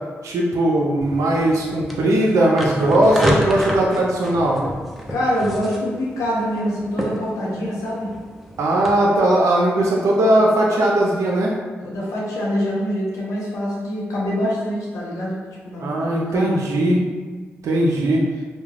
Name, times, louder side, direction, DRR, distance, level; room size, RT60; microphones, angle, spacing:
voice 1, 0.2-4.6 8.6-11.5 15.8-17.1 17.6-18.2, right 1 dB, 75° right, -3 dB, 0.5 m, -18 dB
sound 1, 1.0-8.9, equal, ahead, 0.6 m, -29 dB
voice 2, 5.1-8.1 11.8-15.4 15.6-16.6, equal, 80° left, -5 dB, 0.7 m, -25 dB
2.3 x 2.2 x 3.2 m, 1.4 s
supercardioid pair, 45°, 5 cm